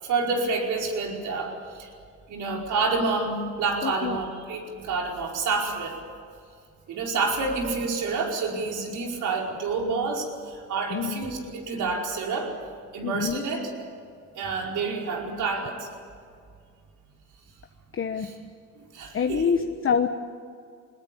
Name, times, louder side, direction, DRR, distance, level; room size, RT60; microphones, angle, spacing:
voice 1, 0.0-1.9 2.3-6.0 6.9-12.5 12.9-13.7 14.3-15.9 18.2-18.4 18.8-19.4, right 4 dB, 80° right, 0 dB, 5.0 m, -28 dB
voice 2, 3.8-4.2 10.9-11.2 13.0-13.4 17.9-18.3 19.1-20.1, left 6 dB, 45° left, 5 dB, 1.2 m, -26 dB
21.5 x 21.0 x 8.5 m, 2.3 s
cardioid pair, 90°, 30 cm